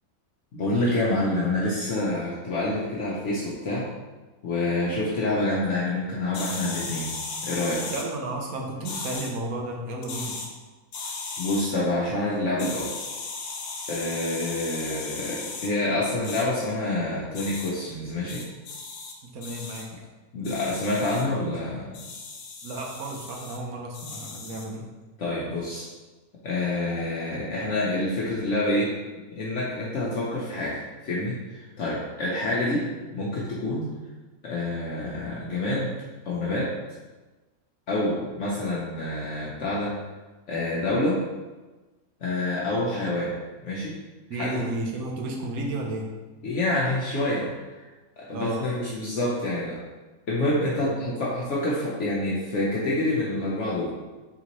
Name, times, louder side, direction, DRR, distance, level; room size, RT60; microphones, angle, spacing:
voice 1, 0.5-3.9 4.4-7.1 7.4-7.8 11.4-12.9 13.9-18.5 20.3-22.0 25.2-25.9 26.4-28.9 29.3-32.9 33.1-33.9 34.4-35.9 36.2-36.7 37.9-39.9 40.5-41.2 42.2-44.0 44.3-44.6 46.4-47.9 48.2-49.8 50.3-53.9, left 1 dB, 60° left, -6 dB, 1.0 m, -27 dB
sound 1, 6.3-8.1 8.8-9.3 10.0-10.5 10.9-11.7 12.6-15.7 16.2-16.4 17.3-17.7 18.3-19.1 19.4-19.8 20.4-21.2 21.9-23.6 23.9-24.7, left 4 dB, 80° left, 1.1 m, -36 dB
voice 2, 7.9-10.4 19.2-20.0 22.6-24.9 44.3-46.1 48.3-48.7 50.7-50.9, right 2 dB, 75° right, 0 dB, 1.2 m, -33 dB
4.0 x 3.6 x 2.9 m, 1.2 s
omnidirectional pair, 1.5 m